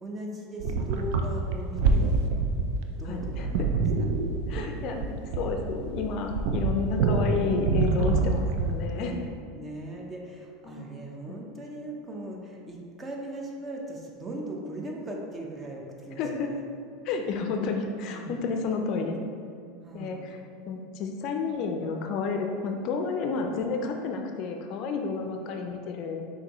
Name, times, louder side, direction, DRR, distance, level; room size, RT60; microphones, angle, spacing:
voice 1, 0.0-2.1 3.0-4.1 8.9-16.6 18.1-18.3 19.8-20.3, right 1 dB, 20° right, 0 dB, 0.7 m, -39 dB
sound 1, 0.6-8.9, right 4 dB, 65° right, 0.4 m, -26 dB
voice 2, 3.0-3.5 4.5-9.1 10.6-10.8 11.3-11.4 16.2-16.6 17.0-19.2 19.9-20.4 20.7-26.3, left 4 dB, 50° left, 4 dB, 0.4 m, -31 dB
5.7 x 2.6 x 3.0 m, 2.2 s
supercardioid pair, 110°, 0 cm